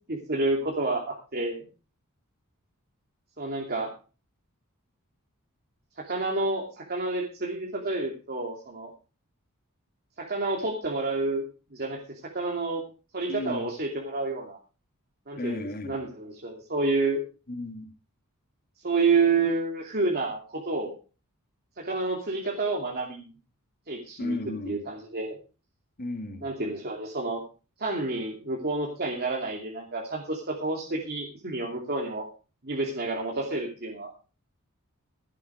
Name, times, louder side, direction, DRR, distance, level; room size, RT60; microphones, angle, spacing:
voice 1, 0.1-1.7 3.4-3.9 6.0-8.9 10.2-11.4 11.7-12.0 12.3-12.8 13.1-14.6 15.3-17.2 18.8-20.9 21.8-23.3 23.9-24.4 24.6-25.4 26.4-27.4 27.8-32.3 32.6-34.1, right 3 dB, 45° right, -1 dB, 2.6 m, -29 dB
voice 2, 13.3-13.7 15.4-16.0 17.5-17.9 24.2-24.8 26.0-26.5, left 2 dB, 45° left, 6 dB, 2.3 m, -34 dB
16.0 x 8.4 x 4.9 m, 0.34 s
head